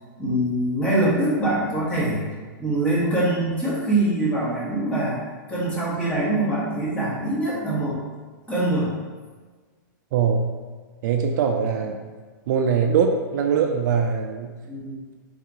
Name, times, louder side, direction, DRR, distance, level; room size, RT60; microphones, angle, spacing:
voice 1, 0.2-2.3 2.6-5.2 5.5-8.0 8.5-8.9 14.7-15.0, right 1 dB, 10° left, -7 dB, 1.2 m, -23 dB
voice 2, 10.1-10.5 11.0-12.0 12.5-14.5, right 6 dB, 55° right, 4 dB, 0.4 m, -22 dB
3.9 x 2.7 x 3.5 m, 1.4 s
hypercardioid pair, 145°, 11 cm